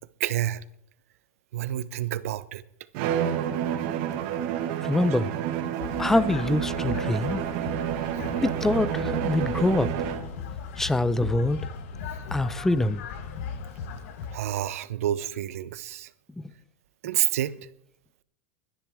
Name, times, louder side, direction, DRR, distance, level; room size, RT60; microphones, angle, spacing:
voice 1, 0.2-0.6 1.5-2.6 14.3-16.1 17.0-17.5, right 12 dB, 80° right, 0.8 m, -28 dB
Bowed string instrument, 2.9-10.4, right 10 dB, 60° right, 1.5 m, -29 dB
voice 2, 4.8-5.3 6.0-7.4 8.4-9.9 10.8-11.6 12.3-13.0, left 2 dB, 5° left, 0.6 m, -24 dB
sound 1, 5.8-14.4, left 6 dB, 70° left, 1.4 m, -37 dB
22.0 x 10.5 x 3.6 m
supercardioid pair, 130°, 8 cm